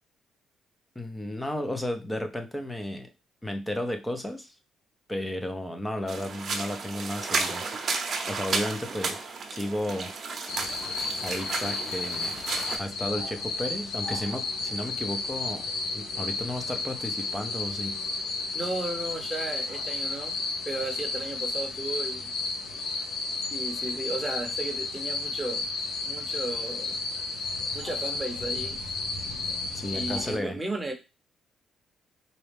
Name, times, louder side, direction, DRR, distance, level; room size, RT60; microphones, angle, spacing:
voice 1, 1.0-3.1 3.4-4.6 5.1-7.6 8.3-10.1 11.2-12.4 12.8-15.7 15.9-18.0 29.7-30.6, left 1 dB, 10° left, 6 dB, 0.7 m, -33 dB
sound 1, 6.1-12.8, right 4 dB, 50° right, 0.8 m, -33 dB
sound 2, 10.5-30.4, left 3 dB, 80° left, 0.9 m, -32 dB
voice 2, 18.5-20.3 20.7-22.3 23.5-25.7 26.0-27.0 27.7-28.8 29.9-30.9, right 2 dB, 15° right, 2 dB, 0.9 m, -34 dB
4.1 x 2.3 x 3.4 m, 0.28 s
cardioid pair, 100°, 0 cm